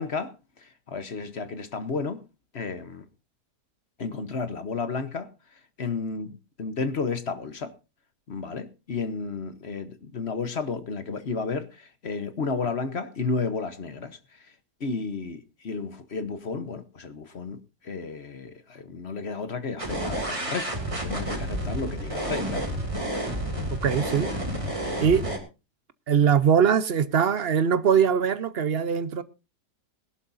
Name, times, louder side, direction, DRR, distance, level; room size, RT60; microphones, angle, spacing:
voice 1, 0.0-2.2 2.5-3.1 4.0-5.3 5.8-7.7 8.3-14.5 14.8-20.7 21.0-22.7 24.9-25.0, left 4 dB, 45° left, 1.1 m, -32 dB
sound 1, 19.8-25.4, right 1 dB, 20° right, 2.7 m, -30 dB
voice 2, 23.8-24.3 25.0-25.2 26.1-29.2, right 7 dB, 50° right, 0.8 m, -21 dB
21.5 x 12.0 x 2.6 m
omnidirectional pair, 1.7 m